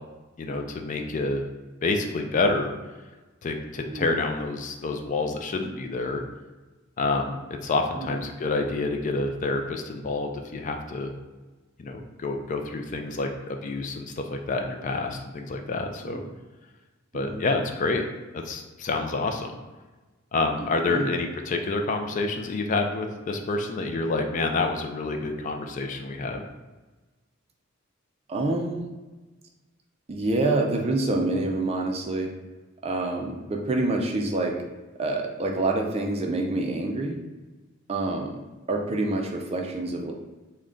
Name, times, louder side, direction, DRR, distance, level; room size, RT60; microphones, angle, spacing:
voice 1, 0.4-1.4 1.8-2.7 3.4-6.2 7.0-11.1 11.8-16.2 17.1-18.1 18.3-19.6 20.3-26.4, left 3 dB, 40° left, 4 dB, 0.3 m, -28 dB
voice 2, 17.1-17.4 20.6-21.1 28.3-28.9 30.1-32.3 32.8-34.6 35.0-37.2 37.9-38.4 38.7-40.1, right 2 dB, 30° right, 1 dB, 0.4 m, -27 dB
3.7 x 2.2 x 3.7 m, 1.2 s
head